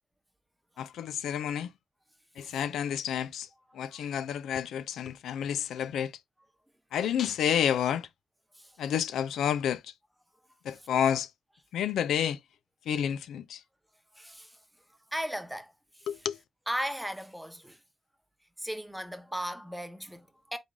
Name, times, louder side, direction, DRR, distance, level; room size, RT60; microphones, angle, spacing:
voice 1, 0.8-1.7 2.4-3.5 3.7-6.1 6.9-8.1 8.8-9.9 10.6-11.3 11.7-12.4 12.9-13.6 16.1-16.4, left 9 dB, 80° left, 0.4 m, -30 dB
voice 2, 14.1-14.6 15.1-16.1 16.7-17.8 18.6-20.6, equal, 5° right, 1.0 m, -37 dB
3.6 x 3.2 x 3.7 m
supercardioid pair, 60°, 0 cm